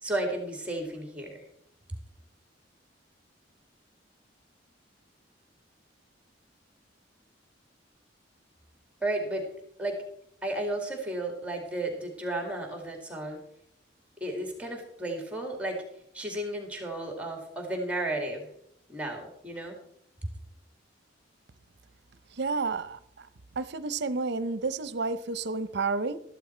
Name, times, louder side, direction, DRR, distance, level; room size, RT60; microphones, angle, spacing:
voice 1, 0.0-1.4 9.0-9.5 9.8-10.0 10.4-13.4 14.2-15.8 16.1-18.5 18.9-19.8, right 1 dB, 5° right, 3 dB, 2.1 m, -33 dB
voice 2, 22.4-23.0 23.6-26.2, right 4 dB, 65° right, 15 dB, 0.7 m, -30 dB
13.5 x 11.0 x 4.4 m, 0.70 s
head